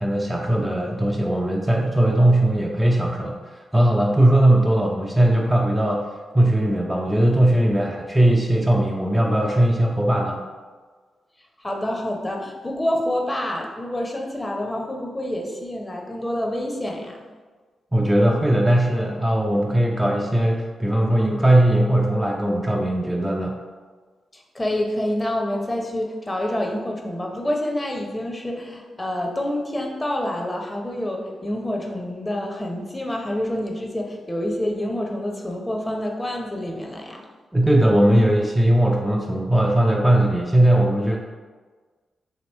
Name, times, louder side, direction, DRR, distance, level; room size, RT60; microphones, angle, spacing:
voice 1, 0.0-6.1 6.3-10.4 17.9-23.5 37.5-41.2, right 1 dB, 10° right, -1 dB, 0.4 m, -19 dB
voice 2, 11.6-17.2 24.3-37.2, left 1 dB, 20° left, 1 dB, 0.8 m, -27 dB
3.0 x 3.0 x 4.2 m, 1.4 s
supercardioid pair, 50°, 0 cm